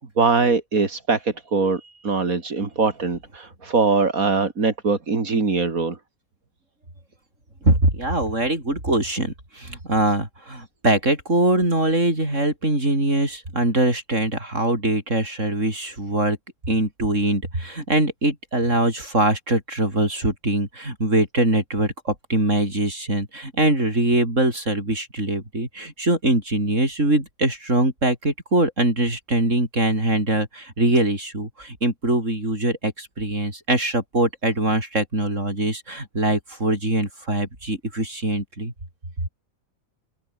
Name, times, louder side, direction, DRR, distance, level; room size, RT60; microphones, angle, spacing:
voice 1, 0.2-6.0, right 4 dB, 85° right, 3.4 m, -22 dB
voice 2, 7.6-16.4 16.7-38.7, right 1 dB, 60° right, 8.1 m, -22 dB
omnidirectional pair, 1.4 m